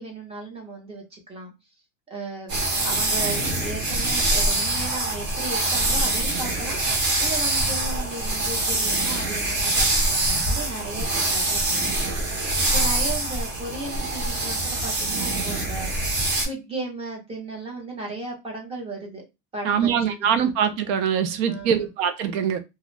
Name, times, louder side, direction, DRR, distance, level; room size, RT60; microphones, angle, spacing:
voice 1, 0.0-1.5 2.1-2.5 2.8-6.8 7.2-12.4 12.7-15.9 16.4-19.2 19.5-20.3 21.4-21.9, right 2 dB, 15° right, 0.7 m, -35 dB
sound 1, 2.5-16.4, right 2 dB, 40° right, 1.2 m, -24 dB
voice 2, 19.6-22.6, right 8 dB, 55° right, 0.6 m, -23 dB
2.5 x 2.3 x 3.1 m
cardioid pair, 175°, 37 cm